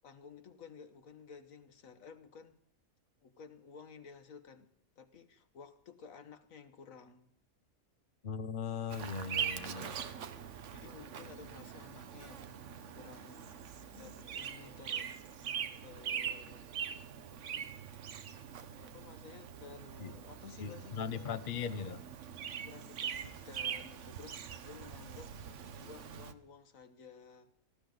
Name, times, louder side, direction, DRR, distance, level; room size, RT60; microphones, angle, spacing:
voice 1, 0.0-2.6 3.2-4.7 5.0-7.3 9.7-10.0 10.7-12.6 12.9-13.5 13.9-15.1 15.8-16.7 18.7-21.3 22.6-25.3 25.7-27.5, left 5 dB, 70° left, 10 dB, 1.5 m, -54 dB
voice 2, 8.2-9.9 20.0-20.1 20.6-22.0, left 6 dB, 45° left, 12 dB, 0.7 m, -39 dB
Bird vocalization bird call bird song, 8.9-26.3, right 8 dB, 60° right, 1.1 m, -42 dB
18.5 x 14.5 x 3.9 m, 0.64 s
omnidirectional pair, 1.5 m